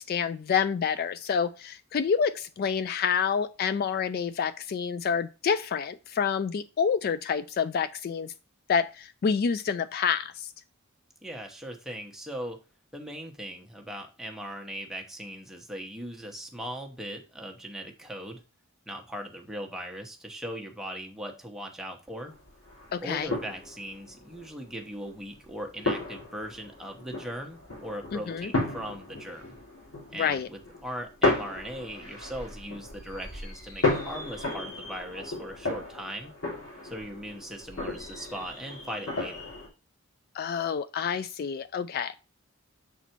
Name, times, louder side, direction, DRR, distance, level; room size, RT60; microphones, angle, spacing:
voice 1, 0.0-8.3 8.7-10.5 22.9-23.3 28.1-28.5 30.2-30.5 40.3-42.1, left 6 dB, 45° left, 0.3 m, -28 dB
voice 2, 11.2-12.6 12.9-18.4 18.9-22.3 23.0-29.5 30.1-36.3 36.8-39.5, equal, ahead, 1.1 m, -39 dB
sound 1, 22.3-39.7, left 2 dB, 85° left, 3.1 m, -34 dB
6.9 x 4.2 x 4.5 m
head